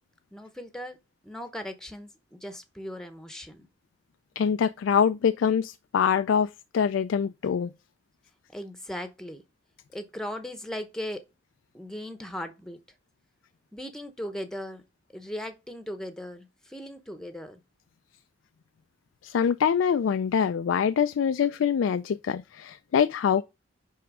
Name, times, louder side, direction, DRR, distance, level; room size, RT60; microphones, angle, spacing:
voice 1, 0.3-1.0 1.2-3.7 8.5-9.4 9.9-11.2 11.7-12.8 13.7-14.8 15.1-17.6, equal, 5° left, 0.8 m, -38 dB
voice 2, 4.4-7.7 19.2-23.4, left 7 dB, 75° left, 0.3 m, -24 dB
10.0 x 3.5 x 4.8 m
head